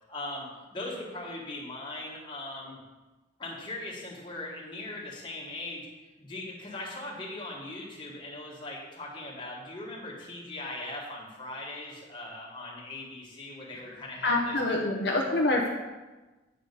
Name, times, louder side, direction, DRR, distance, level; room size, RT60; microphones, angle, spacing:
voice 1, 0.1-2.8 3.4-5.9 6.2-14.8, left 2 dB, 25° left, -5 dB, 1.9 m, -40 dB
voice 2, 14.2-15.7, left 2 dB, 65° left, -1 dB, 0.9 m, -26 dB
8.9 x 3.9 x 6.8 m, 1.2 s
head